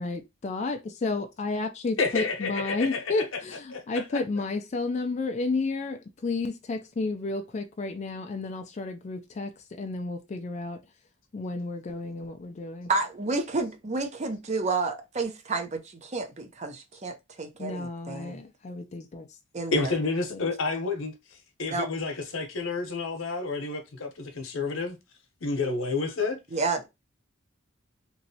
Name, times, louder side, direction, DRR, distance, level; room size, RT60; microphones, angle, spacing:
voice 1, 0.0-10.8 11.3-12.9 17.6-19.4 20.3-20.5, left 3 dB, 35° left, 0.3 m, -32 dB
voice 2, 2.0-3.4 3.7-4.0 19.7-21.1 21.6-25.0 25.4-26.4, left 3 dB, 85° left, 0.8 m, -29 dB
voice 3, 12.9-18.4 19.5-19.9 21.7-21.9 26.5-26.9, right 3 dB, 35° right, 0.5 m, -30 dB
3.0 x 2.6 x 2.7 m
head